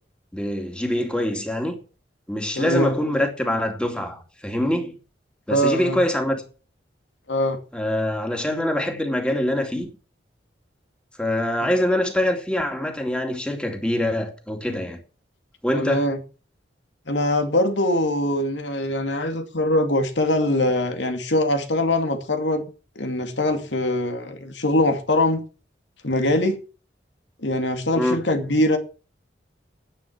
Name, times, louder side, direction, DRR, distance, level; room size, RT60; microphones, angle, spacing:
voice 1, 0.3-1.8 2.3-5.0 5.5-6.4 7.7-9.9 11.2-15.0 15.6-16.1 27.9-28.2, left 1 dB, 5° left, 2.6 m, -24 dB
voice 2, 2.5-3.0 5.5-6.1 7.3-7.6 15.7-16.2 17.1-25.5 26.0-26.6 27.4-28.8, left 1 dB, 85° left, 2.3 m, -22 dB
10.0 x 9.7 x 7.2 m
head